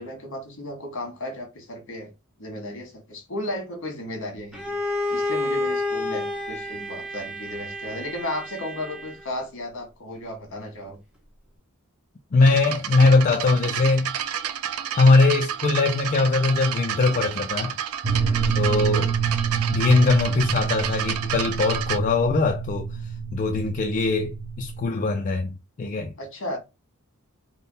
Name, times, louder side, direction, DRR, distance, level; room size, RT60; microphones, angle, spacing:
voice 1, 0.0-2.1 2.4-4.7 5.1-11.0 18.2-18.6 26.2-26.6, left 1 dB, 60° left, 1.4 m, -34 dB
Bowed string instrument, 4.5-9.3, left 2 dB, 5° right, 1.0 m, -30 dB
voice 2, 12.3-14.1 14.9-17.7 18.6-19.1 19.7-22.9 23.3-26.1, left 3 dB, 35° left, 0.4 m, -21 dB
sound 1, 12.4-22.0, right 9 dB, 85° right, 0.4 m, -30 dB
sound 2, 18.0-24.9, right 6 dB, 35° right, 0.6 m, -27 dB
3.6 x 2.1 x 3.9 m
head